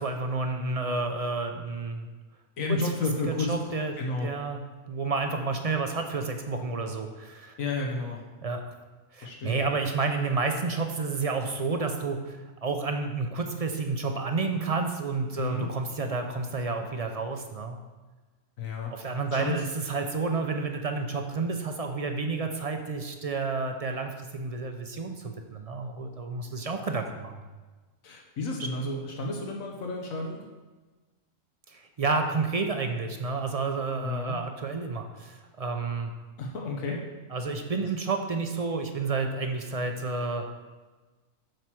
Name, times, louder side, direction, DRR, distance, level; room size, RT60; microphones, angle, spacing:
voice 1, 0.0-2.1 2.7-2.8 3.5-3.9 4.2-4.6 4.9-7.6 8.4-8.6 9.1-17.8 18.9-27.4 31.7-36.1 37.3-40.5, right 4 dB, 45° right, 5 dB, 0.5 m, -30 dB
voice 2, 2.6-4.3 7.6-8.2 9.2-9.6 15.4-15.7 18.6-19.6 28.0-30.4 34.0-34.4 36.4-37.0, left 2 dB, 90° left, 0 dB, 1.5 m, -32 dB
7.7 x 4.5 x 6.2 m, 1.3 s
omnidirectional pair, 1.4 m